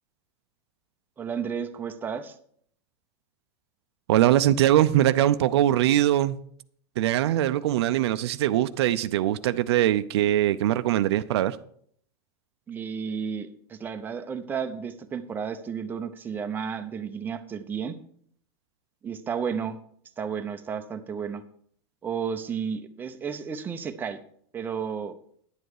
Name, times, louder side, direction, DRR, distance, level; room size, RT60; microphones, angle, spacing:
voice 1, 1.2-2.4 12.7-18.0 19.0-19.8 20.2-21.4 22.0-24.2 24.5-25.1, right 7 dB, 15° right, 0.7 m, -32 dB
voice 2, 4.1-6.4 7.0-11.6, right 13 dB, 80° right, 0.6 m, -22 dB
10.5 x 7.9 x 4.9 m
supercardioid pair, 150°, 13 cm